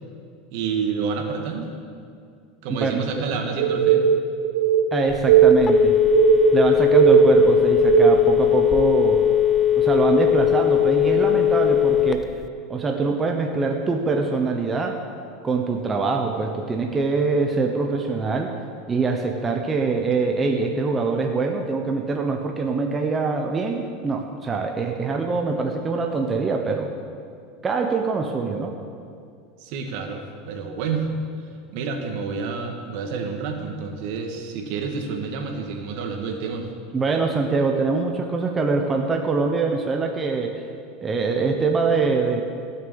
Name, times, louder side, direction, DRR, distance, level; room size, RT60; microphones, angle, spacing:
voice 1, 0.5-1.8 2.6-4.1 20.9-21.0 29.6-31.1 31.7-36.7, right 5 dB, 65° right, 3 dB, 1.9 m, -29 dB
voice 2, 2.7-3.2 4.9-6.0 6.5-9.2 9.8-12.3 12.7-15.0 15.4-18.5 18.9-26.9 27.6-28.7 36.9-40.6 41.0-42.4, right 4 dB, 20° right, 2 dB, 1.0 m, -24 dB
sound 1, 3.6-8.4, right 9 dB, 85° right, 1.3 m, -17 dB
Telephone, 5.1-12.5, left 11 dB, 20° left, 0.4 m, -19 dB
16.5 x 6.9 x 7.1 m, 2.3 s
supercardioid pair, 130°, 0 cm